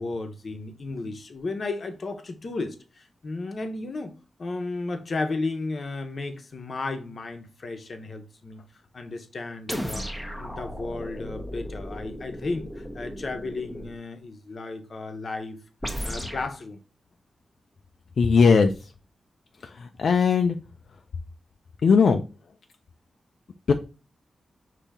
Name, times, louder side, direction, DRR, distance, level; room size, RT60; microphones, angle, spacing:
voice 1, 0.0-4.1 4.4-8.6 8.9-10.1 10.4-15.6 16.0-16.8, left 3 dB, 45° left, 0.8 m, -34 dB
sound 1, 9.7-14.0 15.8-16.5, equal, ahead, 0.7 m, -35 dB
voice 2, 18.2-18.7 20.0-20.6 21.8-22.2 23.7-23.8, left 5 dB, 65° left, 0.3 m, -18 dB
5.4 x 2.7 x 3.5 m
wide cardioid pair, 115°, 0 cm